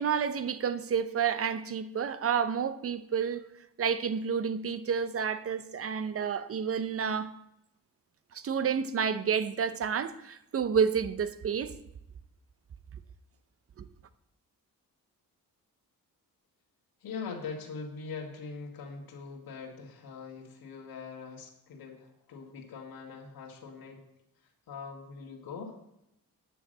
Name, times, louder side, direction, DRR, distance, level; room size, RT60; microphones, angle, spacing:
voice 1, 0.0-3.5 3.8-7.3 8.3-11.7 13.8-13.9, right 7 dB, 40° right, 0.7 m, -30 dB
voice 2, 17.0-24.0 24.7-25.8, left 5 dB, 90° left, 2.2 m, -42 dB
10.0 x 6.0 x 7.8 m
wide cardioid pair, 145°, 35 cm